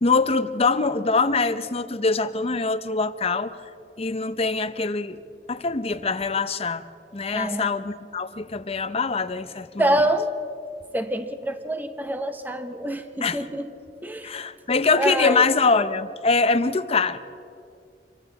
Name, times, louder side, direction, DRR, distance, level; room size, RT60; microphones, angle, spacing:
voice 1, 0.0-3.5 4.0-5.2 5.5-6.8 7.1-9.9 13.2-13.4 14.2-17.2, left 4 dB, 35° left, 11 dB, 0.7 m, -23 dB
voice 2, 7.3-7.7 9.8-10.4 10.9-13.7 14.0-14.4 14.9-15.5, right 1 dB, 10° right, 7 dB, 1.0 m, -26 dB
27.5 x 23.5 x 4.1 m, 2.4 s
head